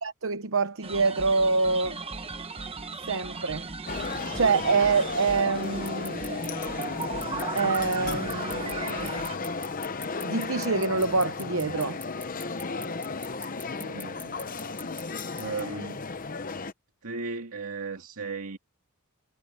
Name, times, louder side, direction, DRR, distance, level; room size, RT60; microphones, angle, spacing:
voice 1, 0.0-2.0 3.1-3.7 4.3-6.2 7.5-9.3 10.2-12.0, right 4 dB, 65° right, 0.9 m, -26 dB
sound 1, 0.8-9.4, right 4 dB, 25° right, 1.2 m, -37 dB
sound 2, 3.9-16.7, left 4 dB, 40° left, 0.9 m, -34 dB
sound 3, 5.9-15.6, left 4 dB, 10° left, 0.9 m, -41 dB
voice 2, 13.8-14.5 15.4-16.1 17.0-18.6, right 4 dB, 85° right, 2.1 m, -36 dB
head